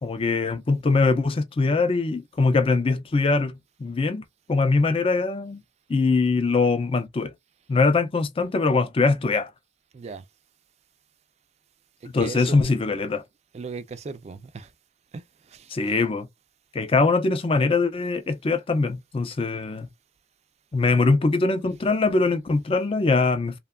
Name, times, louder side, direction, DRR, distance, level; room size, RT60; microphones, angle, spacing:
voice 1, 0.0-4.2 4.5-5.6 5.9-7.3 7.7-9.5 12.1-13.2 15.7-16.3 16.7-19.9 20.7-23.6, left 3 dB, 30° left, 0.4 m, -22 dB
voice 2, 12.2-12.7 13.5-14.7 15.1-15.2 15.5-15.7, right 4 dB, 35° right, 0.3 m, -37 dB
2.8 x 2.2 x 2.3 m
head